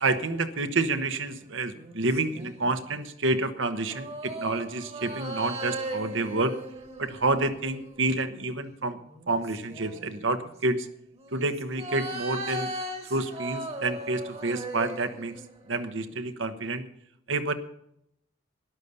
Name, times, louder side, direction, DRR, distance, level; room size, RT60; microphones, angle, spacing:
voice 1, 0.0-6.6 7.0-9.0 9.3-10.9 11.3-12.7 13.1-15.4 15.7-16.9 17.3-17.5, right 2 dB, 70° right, 10 dB, 1.2 m, -28 dB
sound 1, 1.7-3.0 3.9-8.3 9.1-10.3 11.1-15.8 16.1-16.2, right 2 dB, 30° right, 1.6 m, -38 dB
12.5 x 11.0 x 6.8 m, 0.75 s
head